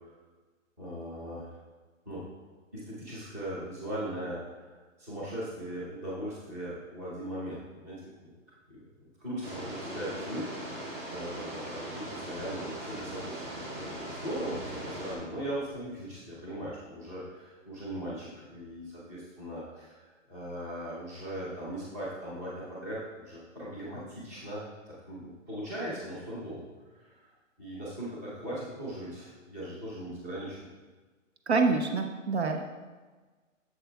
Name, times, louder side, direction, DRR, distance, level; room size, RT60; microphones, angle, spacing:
voice 1, 0.8-1.6 2.1-2.2 2.7-8.3 8.7-8.8 9.2-13.4 13.8-27.3 27.6-30.7, right 1 dB, 10° right, -8 dB, 0.7 m, -39 dB
sound 1, 9.4-15.2, right 1 dB, 35° right, 1.4 m, -40 dB
voice 2, 31.5-32.6, right 4 dB, 55° right, 4 dB, 0.5 m, -26 dB
7.6 x 7.0 x 2.2 m, 1.3 s
hypercardioid pair, 175°, 39 cm